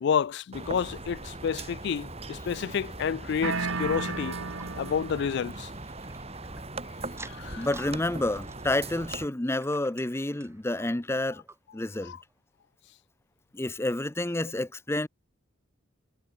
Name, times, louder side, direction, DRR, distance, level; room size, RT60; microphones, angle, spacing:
voice 1, 0.0-4.4 4.8-5.7 7.2-7.7 12.0-12.2, left 7 dB, 55° left, 0.3 m, -30 dB
sound 1, 0.5-9.3, right 2 dB, 30° right, 3.5 m, -40 dB
sound 2, 3.4-5.4, right 4 dB, 85° right, 1.9 m, -33 dB
sound 3, 3.7-6.7 7.1-8.0 8.3-10.6 11.1-11.2 11.5-11.6 12.2-12.3, right 3 dB, 15° right, 3.3 m, -50 dB
voice 2, 7.6-11.4 11.7-12.2 13.5-15.1, left 1 dB, 10° left, 0.6 m, -29 dB
head